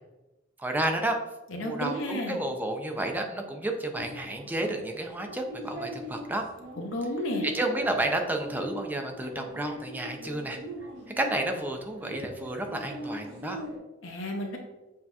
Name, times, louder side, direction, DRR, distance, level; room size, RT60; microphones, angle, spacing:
voice 1, 0.6-1.2 1.6-6.4 7.4-10.6 11.2-13.6, right 1 dB, 10° right, 3 dB, 0.4 m, -31 dB
voice 2, 1.5-2.4 6.8-7.5 14.0-14.6, left 1 dB, 85° left, 2 dB, 0.7 m, -32 dB
sound 1, 4.0-13.8, equal, 75° right, 1.3 m, -40 dB
7.3 x 2.8 x 2.3 m, 1.0 s
head